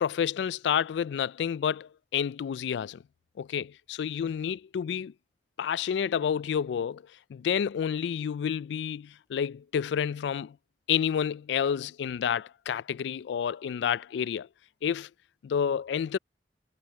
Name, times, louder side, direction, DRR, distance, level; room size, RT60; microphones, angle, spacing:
voice 1, 0.0-3.0 3.4-5.1 5.6-7.0 7.3-10.6 10.9-14.5 14.8-15.1 15.4-16.2, left 8 dB, 80° left, 0.3 m, -29 dB
head